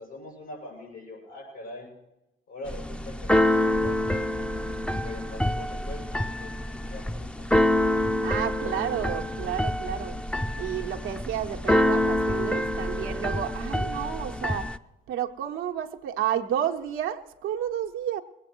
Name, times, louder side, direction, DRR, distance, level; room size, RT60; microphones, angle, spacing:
voice 1, 0.0-1.9 2.5-7.7, left 2 dB, 90° left, -1 dB, 6.9 m, -43 dB
Keyboard (musical), 2.7-14.8, left 1 dB, 5° left, 0.5 m, -26 dB
voice 2, 8.2-10.2 10.6-14.7 15.1-18.2, right 10 dB, 85° right, 3 dB, 1.0 m, -31 dB
20.5 x 9.0 x 6.1 m, 0.94 s
supercardioid pair, 60°, 20 cm